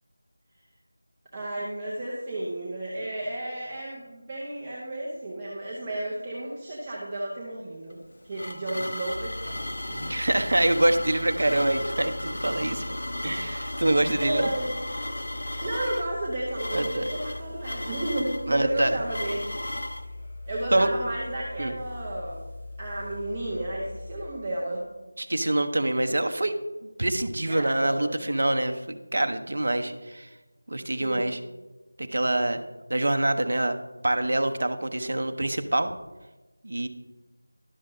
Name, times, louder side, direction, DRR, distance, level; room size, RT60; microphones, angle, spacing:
voice 1, 1.3-10.1 14.2-14.8 15.6-19.4 20.5-22.4 22.8-24.8 27.5-28.2 31.0-31.3, right 1 dB, 10° right, -6 dB, 0.6 m, -32 dB
sound 1, 7.9-20.1, left 1 dB, 55° left, 1.0 m, -35 dB
sound 2, 9.1-24.3, left 2 dB, 10° left, 1.5 m, -41 dB
voice 2, 10.1-13.0 13.2-14.5 16.7-17.0 18.5-19.0 20.7-20.9 21.6-21.7 25.2-26.6 27.0-30.3 30.7-31.4 32.0-32.6 32.9-33.8 34.0-35.9 36.6-36.9, right 1 dB, 45° right, 8 dB, 0.7 m, -25 dB
12.0 x 6.5 x 3.8 m, 1.1 s
figure-of-eight pair, 180°, 0 cm